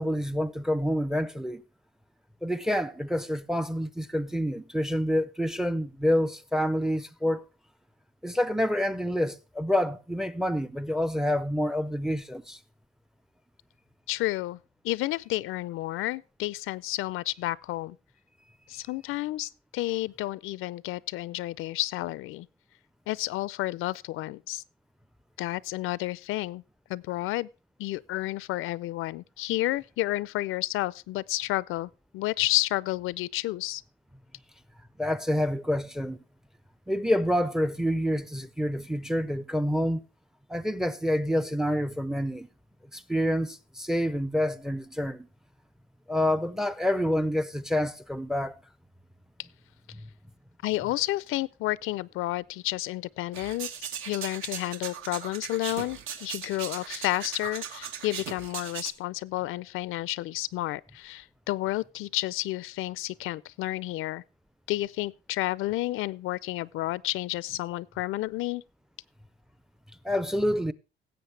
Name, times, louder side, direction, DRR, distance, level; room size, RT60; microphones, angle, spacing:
voice 1, 0.0-1.6 2.4-7.4 8.2-12.6 35.0-36.2 36.9-40.0 40.5-42.5 42.9-45.3 46.1-48.5 70.0-70.7, equal, ahead, 0.4 m, -27 dB
voice 2, 14.1-14.6 14.8-18.0 18.7-22.5 23.1-24.6 25.4-26.6 26.9-27.5 27.8-33.8 50.6-53.7 54.1-64.2 64.7-68.6, left 17 dB, 80° left, 0.5 m, -31 dB
sound 1, 53.3-58.9, right 8 dB, 80° right, 1.4 m, -38 dB
17.5 x 7.8 x 3.2 m
cardioid pair, 150°, 21 cm